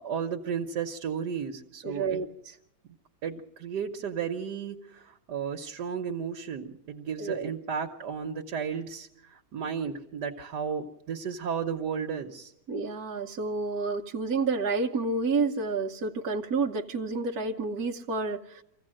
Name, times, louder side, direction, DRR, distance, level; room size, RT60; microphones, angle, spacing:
voice 1, 0.0-2.2 3.2-12.5, right 6 dB, 85° right, 2 dB, 1.7 m, -34 dB
voice 2, 1.8-2.5 7.2-7.5 12.7-18.6, right 4 dB, 65° right, 0 dB, 1.5 m, -30 dB
25.0 x 16.0 x 7.7 m, 0.78 s
omnidirectional pair, 1.8 m